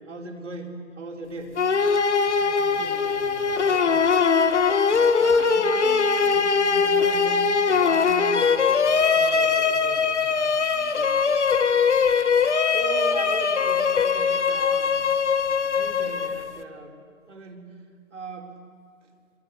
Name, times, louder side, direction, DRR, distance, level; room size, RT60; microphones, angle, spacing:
voice 1, 0.0-1.6 5.2-8.8 10.9-11.3 12.7-15.1 15.7-17.0 17.3-17.8 18.1-18.6, right 3 dB, 60° right, 2 dB, 4.5 m, -38 dB
sound 1, 1.6-16.6, left 5 dB, 55° left, 1.6 m, -21 dB
voice 2, 2.1-4.1 9.1-11.0, right 4 dB, 15° right, -1 dB, 2.1 m, -43 dB
27.0 x 22.5 x 8.5 m, 2.2 s
figure-of-eight pair, 140°, 40 cm